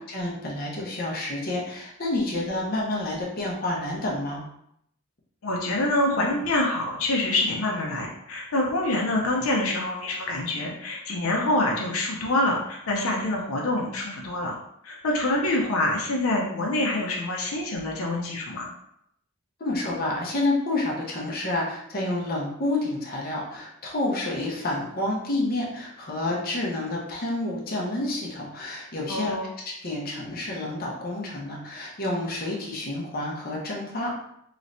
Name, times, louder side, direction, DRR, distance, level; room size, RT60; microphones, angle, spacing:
voice 1, 0.1-4.4 19.6-29.4 29.6-34.1, left 2 dB, 45° left, -4 dB, 0.8 m, -29 dB
voice 2, 5.4-14.5 14.8-18.7 29.1-29.5, left 2 dB, 85° left, -1 dB, 0.6 m, -26 dB
3.1 x 3.1 x 2.6 m, 0.75 s
head